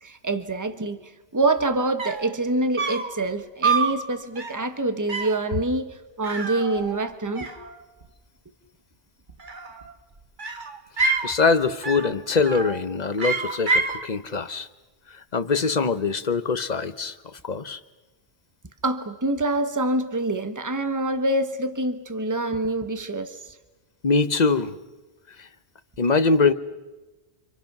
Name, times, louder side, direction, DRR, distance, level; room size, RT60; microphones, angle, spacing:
voice 1, 0.0-7.5 18.8-23.6, right 2 dB, 15° right, 9 dB, 1.3 m, -26 dB
sound 1, 1.7-1.8 2.0-2.3 2.8-3.2 3.6-4.0 4.4-4.7 5.1-5.4 6.2-7.1 7.4-8.1 9.3-9.9 10.4-11.3 11.8-12.2 12.5-12.8 13.2-14.0, right 4 dB, 45° right, 1.8 m, -27 dB
voice 2, 11.2-14.7 15.1-17.2 17.4-17.8 24.0-24.7 25.4-25.5 26.0-26.5, left 4 dB, 40° left, 11 dB, 1.1 m, -23 dB
30.0 x 26.5 x 6.1 m, 1.1 s
omnidirectional pair, 1.1 m